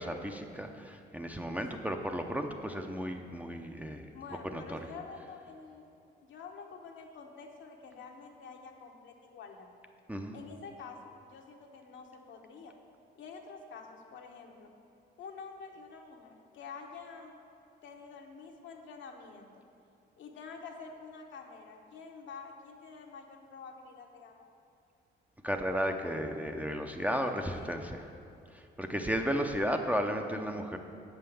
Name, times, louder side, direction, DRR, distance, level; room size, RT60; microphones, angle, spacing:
voice 1, 0.0-4.0 4.5-4.8 10.1-10.4 25.4-28.1 28.5-30.8, equal, 5° right, 4 dB, 0.6 m, -34 dB
voice 2, 4.1-5.9 6.2-9.7 10.3-12.7 13.1-14.7 15.2-17.4 17.8-19.5 20.2-24.5 27.1-27.8, left 5 dB, 75° left, 2 dB, 1.0 m, -48 dB
7.4 x 5.7 x 6.9 m, 2.6 s
cardioid pair, 90°, 20 cm